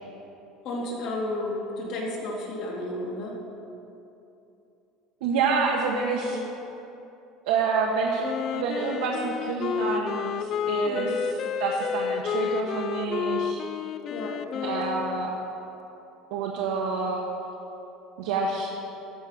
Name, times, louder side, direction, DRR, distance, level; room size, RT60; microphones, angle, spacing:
voice 1, 0.6-3.4 6.2-6.5 10.8-11.3 14.1-14.7, left 1 dB, 55° left, -2 dB, 2.1 m, -33 dB
voice 2, 5.2-6.4 7.5-8.2 8.5-13.6 14.6-15.3 16.3-17.2 18.2-18.8, right 5 dB, 90° right, -2 dB, 1.0 m, -28 dB
Wind instrument woodwind instrument, 8.2-15.3, left 8 dB, 40° left, 0.3 m, -30 dB
13.5 x 4.8 x 5.5 m, 2.9 s
cardioid pair, 150°, 0 cm